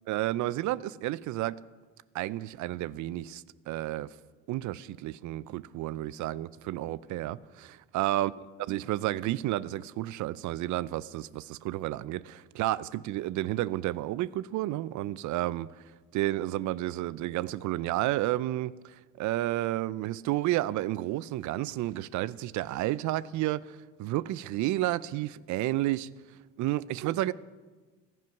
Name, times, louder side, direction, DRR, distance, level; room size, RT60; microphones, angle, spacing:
voice 1, 0.1-1.6 2.1-4.1 4.5-8.3 8.7-15.8 16.1-26.1 26.6-27.3, right 15 dB, 65° right, 0.5 m, -31 dB
15.5 x 11.0 x 5.8 m
supercardioid pair, 90°, 31 cm